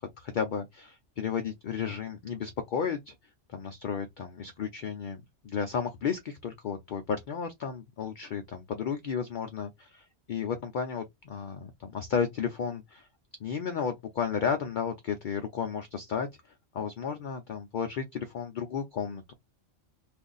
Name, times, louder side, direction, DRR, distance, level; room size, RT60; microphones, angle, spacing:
voice 1, 0.0-3.1 3.5-13.1 13.4-16.3 16.7-19.3, left 6 dB, 60° left, 0.5 m, -33 dB
2.6 x 2.4 x 3.8 m
omnidirectional pair, 1.3 m